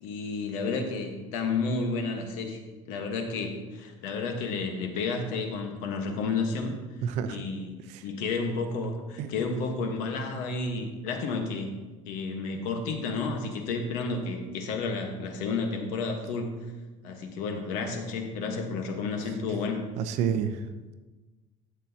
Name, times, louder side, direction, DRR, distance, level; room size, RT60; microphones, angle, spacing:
voice 1, 0.0-2.6 2.9-6.8 7.3-7.8 8.0-11.7 12.0-16.6 17.0-19.8, left 4 dB, 75° left, 4 dB, 1.3 m, -31 dB
voice 2, 7.0-7.4 7.9-8.0 9.2-9.3 20.0-20.6, right 8 dB, 60° right, 10 dB, 0.6 m, -29 dB
11.5 x 7.7 x 2.8 m, 1.2 s
cardioid pair, 180°, 13 cm